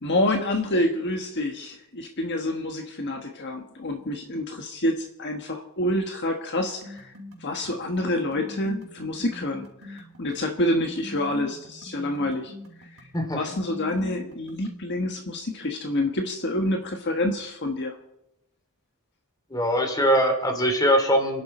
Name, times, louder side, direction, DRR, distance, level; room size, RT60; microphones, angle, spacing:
voice 1, 0.0-12.5 12.8-13.1 13.3-18.0, left 1 dB, 50° left, 4 dB, 1.4 m, -28 dB
sound 1, 6.8-14.8, left 2 dB, 70° right, 4.0 m, -43 dB
voice 2, 13.1-13.4 19.5-21.4, equal, 15° left, 5 dB, 2.8 m, -22 dB
30.0 x 11.0 x 4.3 m, 0.87 s
head